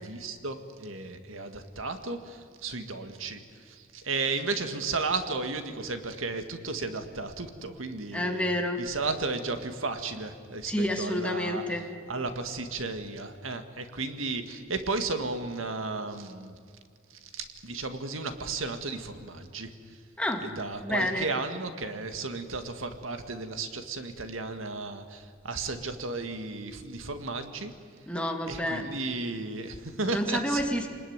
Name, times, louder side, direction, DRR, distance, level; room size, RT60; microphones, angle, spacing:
voice 1, 0.0-8.4 8.8-11.6 12.1-16.6 17.2-20.0 20.4-27.7 28.5-30.6, right 3 dB, 80° right, 8 dB, 2.0 m, -34 dB
voice 2, 8.1-8.8 10.7-11.8 20.2-20.5 20.8-21.3 28.1-28.9 30.1-30.9, left 1 dB, 5° left, 3 dB, 2.4 m, -29 dB
28.0 x 20.5 x 9.6 m, 2.2 s
head